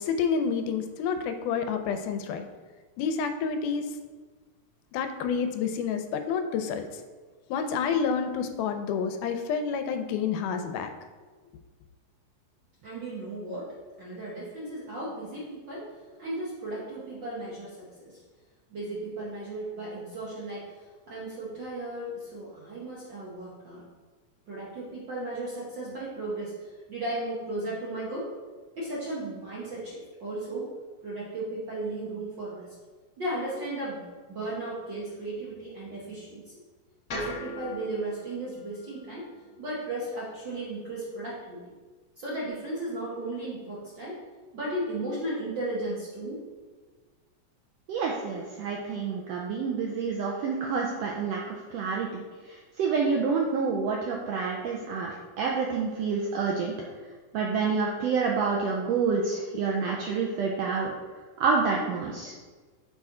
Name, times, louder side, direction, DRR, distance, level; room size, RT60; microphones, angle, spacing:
voice 1, 0.0-2.5 3.0-3.9 4.9-7.0 7.5-10.9, left 6 dB, 85° left, 7 dB, 2.1 m, -29 dB
voice 2, 12.8-15.9 16.2-18.2 18.7-20.8 21.1-23.9 24.5-28.3 28.8-30.7 31.0-32.7 33.2-36.4 37.1-39.3 39.6-41.6 42.2-44.2 44.5-46.4, right 2 dB, 60° right, -7 dB, 1.2 m, -35 dB
sound 1, 37.1-41.3, left 2 dB, 65° left, 0.8 m, -43 dB
voice 3, 47.9-52.2 52.8-56.7 57.3-60.9 61.4-62.3, right 5 dB, 85° right, -1 dB, 1.4 m, -28 dB
6.6 x 4.3 x 3.6 m, 1.4 s
omnidirectional pair, 3.5 m